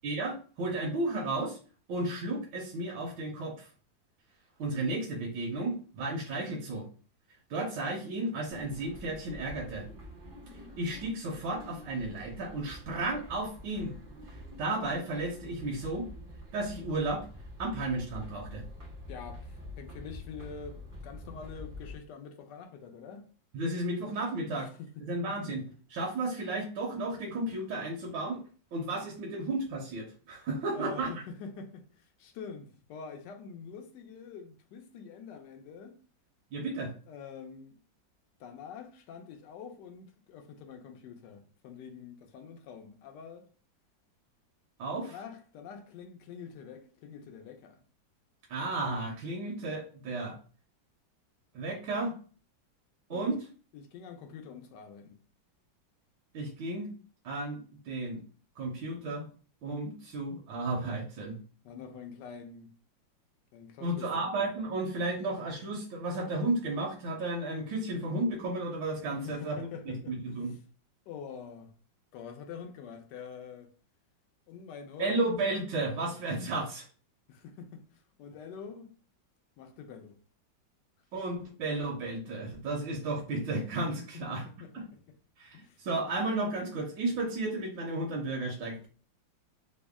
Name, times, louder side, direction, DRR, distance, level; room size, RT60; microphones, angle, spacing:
voice 1, 0.0-1.6 1.9-3.7 4.6-6.9 7.5-9.8 10.8-13.9 14.6-16.1 16.5-17.3 17.6-18.6 23.5-24.7 25.0-25.6 25.9-28.4 28.7-31.1 36.5-36.9 44.8-45.2 48.5-50.4 51.5-52.1 53.1-53.4 56.3-56.9 57.2-58.2 58.6-59.3 59.6-61.4 63.8-69.6 69.9-70.5 75.0-76.9 81.1-84.5 84.7-84.9 85.4-88.9, right 2 dB, 75° right, 1.3 m, -33 dB
sound 1, 8.5-22.0, left 1 dB, 60° right, 0.4 m, -47 dB
voice 2, 19.1-23.3 24.8-25.4 30.7-35.9 37.1-37.7 38.4-43.5 45.1-47.8 53.1-53.3 53.7-55.2 61.6-62.7 63.5-64.5 69.1-70.2 71.1-71.7 72.1-73.7 74.5-75.3 77.3-78.9 79.6-80.2 83.8-84.7 85.5-85.8, left 6 dB, 70° left, 1.1 m, -46 dB
3.5 x 2.0 x 3.4 m
omnidirectional pair, 2.1 m